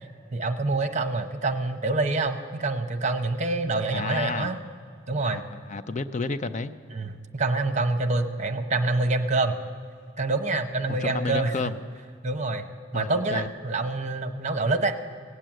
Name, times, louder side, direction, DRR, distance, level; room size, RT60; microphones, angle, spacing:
voice 1, 0.3-4.6 5.1-5.4 6.9-9.6 10.2-11.6 12.2-12.7 12.9-14.9, right 3 dB, 40° right, 8 dB, 0.9 m, -26 dB
voice 2, 3.9-4.5 5.3-5.4 5.7-6.7 10.9-11.8 12.9-13.5, left 3 dB, 40° left, 11 dB, 0.5 m, -30 dB
17.5 x 7.7 x 8.8 m, 2.3 s
head